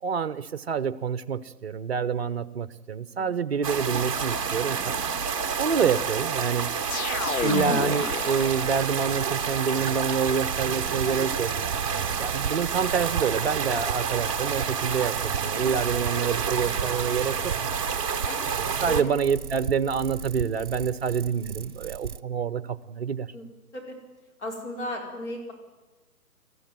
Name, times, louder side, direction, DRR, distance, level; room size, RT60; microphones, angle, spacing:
voice 1, 0.0-4.9 5.6-6.7 7.4-11.5 12.2-17.5 18.8-23.3, right 6 dB, 40° right, 16 dB, 0.9 m, -27 dB
sound 1, 3.6-19.0, right 6 dB, 20° right, 1.2 m, -29 dB
sound 2, 6.9-9.1, left 6 dB, 65° left, 1.0 m, -30 dB
sound 3, 7.5-22.2, right 7 dB, 60° right, 1.0 m, -37 dB
voice 2, 16.5-16.9 18.2-18.5 18.8-19.0 23.3-24.0 24.4-25.5, left 1 dB, 45° left, 1 dB, 5.0 m, -36 dB
23.0 x 14.5 x 9.3 m, 1.2 s
hypercardioid pair, 165°, 47 cm